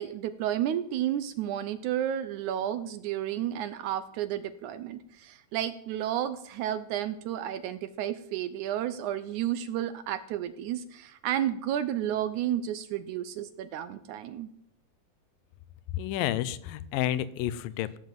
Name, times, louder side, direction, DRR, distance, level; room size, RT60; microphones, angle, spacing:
voice 1, 0.0-14.5, right 11 dB, 75° right, 13 dB, 1.8 m, -32 dB
voice 2, 16.0-18.0, left 12 dB, 85° left, 16 dB, 2.4 m, -30 dB
17.0 x 7.4 x 7.7 m, 0.73 s
omnidirectional pair, 3.9 m